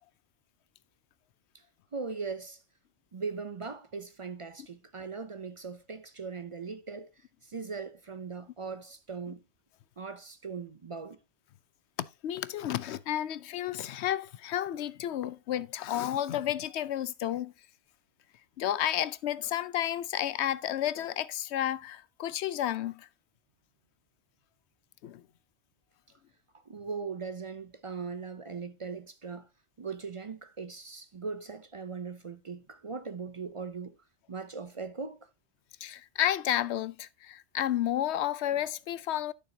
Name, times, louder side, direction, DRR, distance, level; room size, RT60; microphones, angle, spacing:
voice 1, 1.9-2.6 3.1-7.1 7.4-9.4 10.0-11.2 26.7-29.5 29.8-34.0 34.3-35.3, right 5 dB, 40° right, 0.5 m, -39 dB
voice 2, 12.0-17.5 18.6-23.1 25.0-25.2 35.8-39.3, left 12 dB, 75° left, 0.9 m, -31 dB
11.5 x 6.6 x 2.7 m
omnidirectional pair, 1.2 m